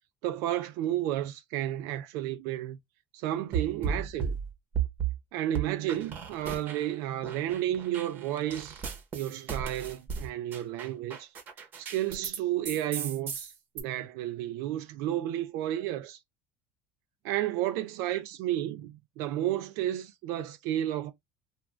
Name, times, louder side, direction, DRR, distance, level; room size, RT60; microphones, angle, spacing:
voice 1, 0.2-2.8 3.1-4.4 5.3-8.8 9.1-11.3 11.8-16.2 17.2-21.1, right 12 dB, 70° right, 0.4 m, -32 dB
sound 1, 3.5-5.2 5.5-6.9 7.2-12.4 12.6-13.8, right 7 dB, 35° right, 0.9 m, -35 dB
2.5 x 2.2 x 3.3 m
cardioid pair, 140°, 6 cm